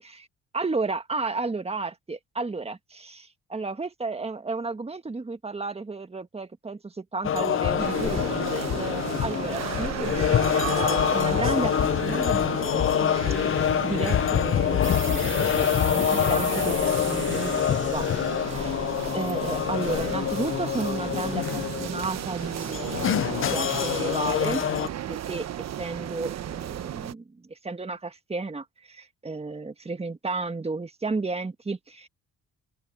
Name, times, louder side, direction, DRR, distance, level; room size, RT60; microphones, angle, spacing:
voice 1, 0.5-10.3 10.6-12.5 13.8-18.7 19.1-24.6 25.1-32.1, right 3 dB, 20° right, 1.7 m, -33 dB
sound 1, 7.2-24.9, left 10 dB, 45° left, 0.5 m, -26 dB
sound 2, 7.8-27.1, right 10 dB, 60° right, 1.1 m, -34 dB
sound 3, 14.8-20.1, right 8 dB, 40° right, 0.9 m, -39 dB
open air
cardioid pair, 90°, 30 cm